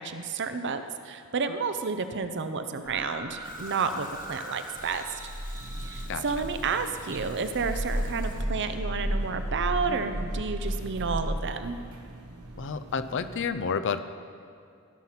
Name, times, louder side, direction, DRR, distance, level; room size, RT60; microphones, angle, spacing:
voice 1, 0.0-5.0 5.9-11.8, right 5 dB, 55° right, 9 dB, 0.7 m, -31 dB
sound 1, 2.9-6.8 7.1-11.3, equal, 15° right, 0.6 m, -34 dB
Water tap faucet / Sink (filling or washing), 3.4-10.4, left 3 dB, 35° left, 1.2 m, -52 dB
sound 2, 5.5-13.5, right 2 dB, 70° right, 1.3 m, -45 dB
voice 2, 6.1-6.5 12.6-14.1, left 6 dB, 55° left, 11 dB, 0.5 m, -30 dB
17.0 x 5.9 x 5.8 m, 2.4 s
head